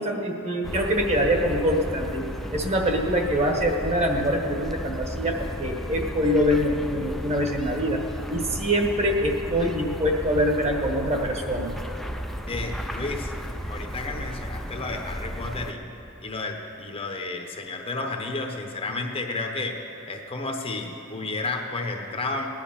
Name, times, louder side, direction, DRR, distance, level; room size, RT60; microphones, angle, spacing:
voice 1, 0.0-8.0 8.3-11.7, equal, 30° right, 2 dB, 1.4 m, -24 dB
sound 1, 0.6-15.7, equal, ahead, 0.5 m, -34 dB
voice 2, 12.5-13.3 13.7-15.9 16.2-19.8 20.1-22.5, left 3 dB, 25° left, 3 dB, 0.9 m, -32 dB
16.5 x 10.5 x 5.8 m, 2.9 s
head